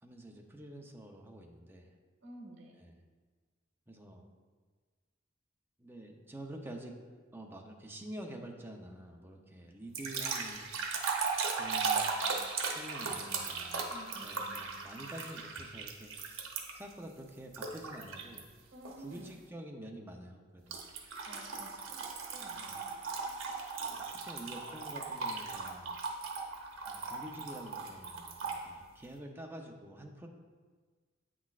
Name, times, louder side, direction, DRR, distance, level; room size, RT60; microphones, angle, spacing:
voice 1, 0.0-2.0 2.8-2.9 3.9-4.3 5.8-6.9 7.3-10.7 11.6-12.4 12.6-13.9 14.2-16.5 16.7-18.4 19.0-20.8 22.5-22.7 23.3-23.4 23.9-26.0 26.9-30.3, right 1 dB, 10° right, 1 dB, 0.6 m, -48 dB
voice 2, 2.2-2.7 13.9-14.6 18.7-19.3 21.0-23.3, right 1 dB, 70° right, 2 dB, 1.3 m, -53 dB
sound 1, 9.9-16.9 17.5-18.4 18.9-19.2 20.7-28.6, right 4 dB, 90° right, 0.9 m, -37 dB
8.5 x 6.1 x 2.4 m, 1.5 s
head